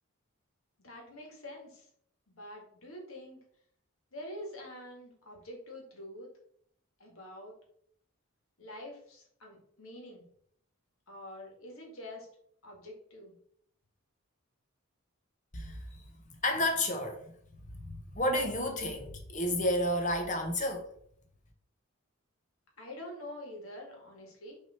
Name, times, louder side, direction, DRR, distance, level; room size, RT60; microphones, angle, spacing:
voice 1, 0.8-1.9 2.3-3.4 4.1-6.3 7.0-7.5 8.6-10.2 11.1-12.3 12.6-13.3 22.8-24.5, left 1 dB, 65° left, 2.0 m, -46 dB
voice 2, 15.5-16.0 16.3-17.3 17.7-20.9, left 1 dB, 35° left, 0.9 m, -31 dB
6.3 x 3.6 x 4.3 m
head